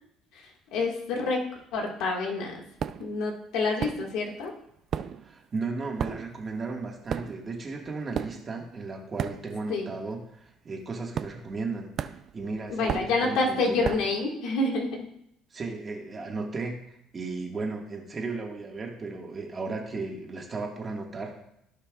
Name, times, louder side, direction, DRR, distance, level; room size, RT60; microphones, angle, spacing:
voice 1, 0.7-2.6 3.0-4.5 9.7-9.9 12.7-15.0, left 3 dB, 80° left, 0 dB, 1.8 m, -28 dB
sound 1, 2.8-3.2 3.8-4.4 4.7-9.8 10.1-10.4 11.1-11.7 12.0-14.2, right 8 dB, 50° right, 0.4 m, -35 dB
voice 2, 5.2-11.9 12.3-13.8 15.5-21.4, right 3 dB, 30° right, 0 dB, 1.7 m, -35 dB
16.0 x 5.6 x 2.4 m, 0.77 s
cardioid pair, 115°, 0 cm